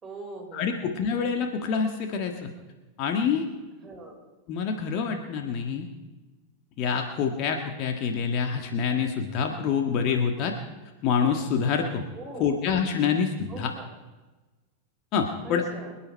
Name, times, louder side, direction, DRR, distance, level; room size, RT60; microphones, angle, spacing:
voice 1, 0.0-0.9 3.8-4.2 12.1-12.6 13.5-13.9 15.4-16.0, right 2 dB, 20° right, -1 dB, 4.3 m, -42 dB
voice 2, 0.5-2.5 3.0-3.4 4.5-5.9 6.8-10.5 11.0-12.0 12.4-13.7 15.1-15.6, left 6 dB, 40° left, 4 dB, 1.6 m, -26 dB
25.5 x 9.2 x 4.5 m, 1.2 s
figure-of-eight pair, 90°, 0 cm